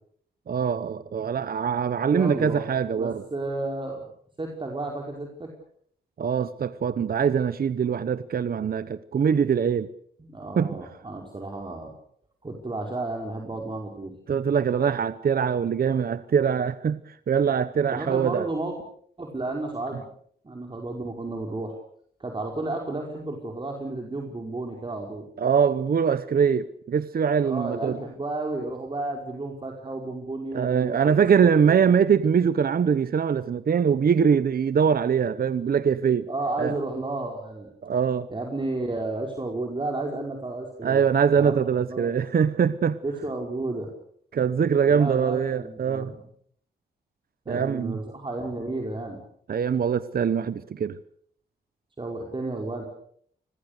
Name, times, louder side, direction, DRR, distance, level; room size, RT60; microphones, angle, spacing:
voice 1, 0.5-3.2 6.2-9.9 10.6-10.8 14.3-18.5 25.4-28.0 30.5-36.3 36.6-36.8 37.8-38.3 40.8-43.0 44.3-46.1 47.5-48.0 49.5-51.0, right 7 dB, 60° right, 1.0 m, -23 dB
voice 2, 2.1-2.7 3.0-4.0 4.4-5.5 10.2-11.9 12.4-14.1 17.9-18.7 19.2-20.1 20.4-21.8 22.2-25.3 27.4-31.1 31.6-31.7 36.3-37.7 38.3-41.0 41.4-42.1 43.0-43.9 44.9-46.2 47.4-49.2 52.0-52.9, right 2 dB, 30° right, 5.0 m, -32 dB
28.5 x 21.5 x 6.8 m
cardioid pair, 90°, 17 cm